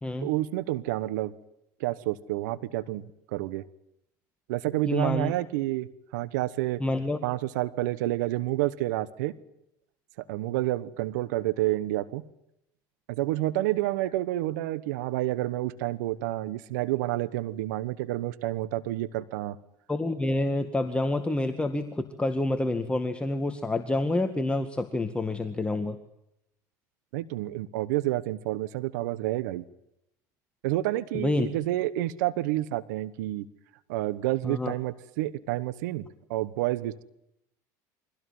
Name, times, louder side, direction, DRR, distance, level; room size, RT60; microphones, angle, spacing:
voice 1, 0.2-1.3 1.8-3.0 3.3-3.6 4.5-5.9 6.1-6.8 7.2-9.3 10.3-12.2 13.1-19.6 27.1-29.6 30.6-33.4 33.9-37.0, right 16 dB, 80° right, 16 dB, 1.1 m, -29 dB
voice 2, 4.9-5.3 6.8-7.2 19.9-26.0 31.1-31.5 34.4-34.7, left 2 dB, 10° left, 6 dB, 2.0 m, -28 dB
24.5 x 16.5 x 9.5 m, 0.82 s
supercardioid pair, 90°, 9 cm